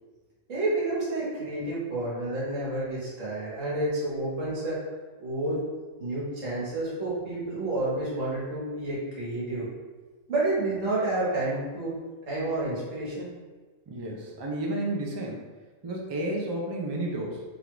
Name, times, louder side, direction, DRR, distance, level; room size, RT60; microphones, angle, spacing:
voice 1, 0.5-4.8 5.2-5.6 6.0-9.7 10.3-11.9 12.3-13.3, right 2 dB, 80° right, -7 dB, 1.8 m, -29 dB
voice 2, 13.9-15.5 15.8-17.4, right 1 dB, 40° right, -1 dB, 0.4 m, -31 dB
3.5 x 2.5 x 4.5 m, 1.3 s
omnidirectional pair, 1.3 m